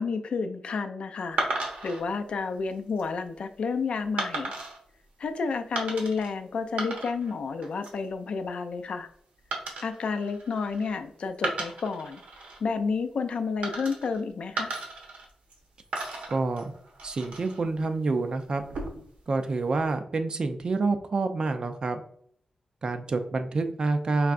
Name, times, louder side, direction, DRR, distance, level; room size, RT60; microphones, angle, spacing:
voice 1, 0.0-1.4 1.8-4.5 5.2-9.1 9.8-12.2 12.6-14.7, left 4 dB, 65° left, 7 dB, 0.4 m, -30 dB
sound 1, 1.4-2.0 2.7-3.1 4.2-4.8 5.8-6.3 6.6-7.3 7.6-8.1 9.5-11.0 11.3-12.6 13.6-14.2 14.6-15.6 15.9-17.6 18.6-19.2, right 2 dB, 90° right, 1.0 m, -35 dB
voice 2, 16.3-16.7 17.0-18.6 19.3-22.0 22.8-24.3, right 3 dB, 45° right, 8 dB, 0.5 m, -27 dB
4.7 x 3.2 x 2.5 m, 0.62 s
wide cardioid pair, 135°, 2 cm